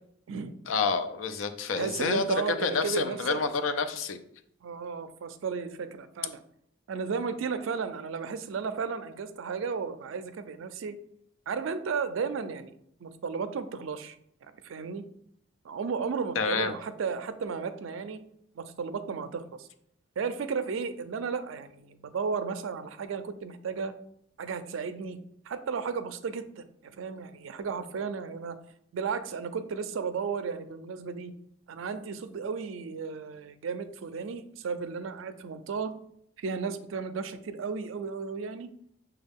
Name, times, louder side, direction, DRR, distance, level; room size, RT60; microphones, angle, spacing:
voice 1, 0.7-4.2 16.4-16.7, left 5 dB, 80° left, 9 dB, 0.4 m, -28 dB
voice 2, 1.8-3.4 4.6-6.4 6.9-11.0 11.5-12.7 13.0-14.2 14.4-15.0 15.6-18.2 18.5-19.7 20.2-23.9 24.4-25.2 25.5-28.6 28.9-31.3 31.7-35.9 36.4-38.7, right 5 dB, 75° right, 10 dB, 0.4 m, -34 dB
6.3 x 2.3 x 3.5 m, 0.70 s
head